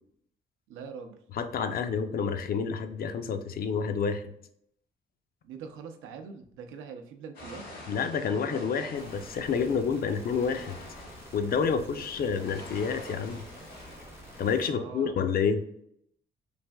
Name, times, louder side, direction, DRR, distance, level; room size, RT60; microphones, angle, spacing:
voice 1, 0.7-1.2 5.4-7.7 14.6-15.2, right 6 dB, 85° right, 6 dB, 0.5 m, -43 dB
voice 2, 1.3-4.2 7.9-10.7 11.3-13.4 14.4-15.6, left 6 dB, 50° left, 8 dB, 0.4 m, -29 dB
sound 1, 7.3-14.5, left 1 dB, 70° left, 1.4 m, -47 dB
sound 2, 9.0-14.6, equal, 10° right, 0.5 m, -50 dB
3.2 x 2.5 x 2.2 m, 0.72 s
cardioid pair, 90°, 20 cm